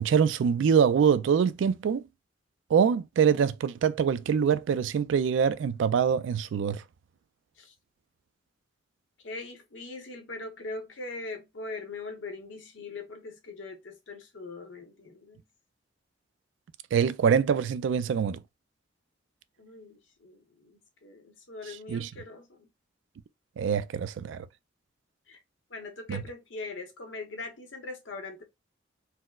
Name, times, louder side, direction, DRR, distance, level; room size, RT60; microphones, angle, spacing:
voice 1, 0.0-2.0 2.7-6.8 16.9-18.4 21.9-22.1 23.6-24.5 26.1-26.2, right 7 dB, 70° right, 0.3 m, -24 dB
voice 2, 9.2-15.4 19.6-22.7 25.3-25.4 25.7-28.4, left 3 dB, 75° left, 0.8 m, -41 dB
4.2 x 2.0 x 2.2 m
head